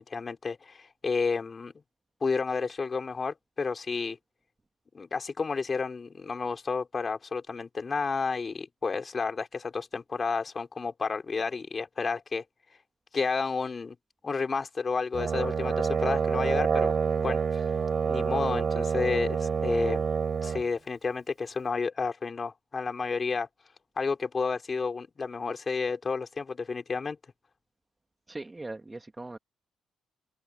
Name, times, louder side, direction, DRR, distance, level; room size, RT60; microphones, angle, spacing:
voice 1, 0.0-1.7 2.2-4.2 4.9-12.4 13.1-14.0 14.2-17.6 18.0-20.0 20.4-23.5 24.0-27.2, left 4 dB, 35° left, 4.5 m, -31 dB
Brass instrument, 15.1-20.6, right 6 dB, 45° right, 4.3 m, -27 dB
voice 2, 28.3-29.4, right 2 dB, 20° right, 1.9 m, -40 dB
cardioid pair, 90°, 0 cm